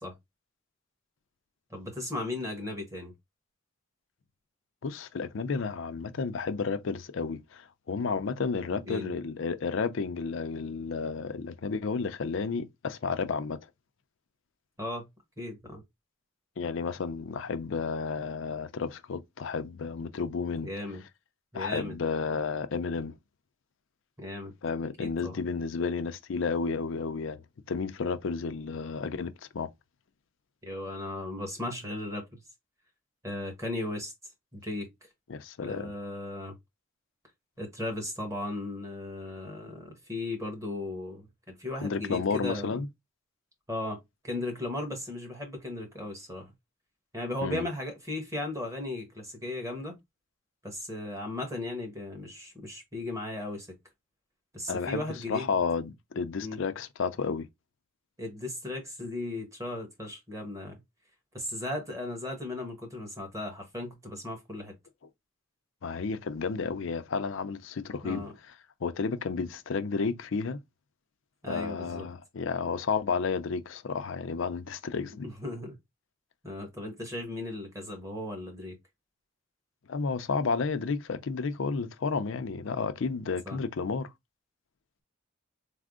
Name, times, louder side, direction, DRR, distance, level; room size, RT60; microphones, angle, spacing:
voice 1, 1.7-3.1 8.7-9.1 14.8-15.1 15.4-15.8 20.6-21.0 21.5-22.0 24.2-24.5 25.0-25.4 30.6-32.4 33.2-34.1 34.5-35.1 35.6-36.6 37.6-42.8 43.7-44.0 44.2-46.5 47.1-50.0 50.6-53.7 54.5-55.5 56.4-56.6 58.2-60.8 61.3-64.7 68.0-68.3 71.4-72.1 75.2-75.8 76.4-78.8 83.5-83.6, left 1 dB, 15° right, 1.2 m, -36 dB
voice 2, 4.8-13.6 16.6-20.7 21.5-23.2 24.6-27.4 27.7-29.7 35.3-35.9 41.8-42.9 47.4-47.6 54.7-57.5 65.8-68.3 68.8-70.6 71.4-75.3 79.9-84.1, left 5 dB, 65° left, 0.5 m, -32 dB
3.5 x 2.0 x 3.6 m
head